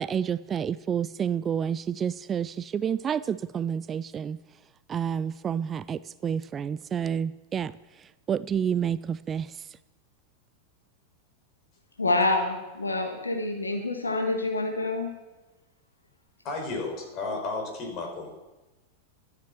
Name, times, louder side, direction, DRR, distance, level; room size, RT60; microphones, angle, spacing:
voice 1, 0.0-4.4 4.9-7.7 8.3-9.5, right 8 dB, 25° right, 17 dB, 0.3 m, -29 dB
voice 2, 12.0-15.1, left 2 dB, 80° left, 4 dB, 1.6 m, -27 dB
voice 3, 16.4-18.3, left 3 dB, 35° left, 2 dB, 4.9 m, -33 dB
13.5 x 9.5 x 7.2 m, 1.1 s
figure-of-eight pair, 90°, 0 cm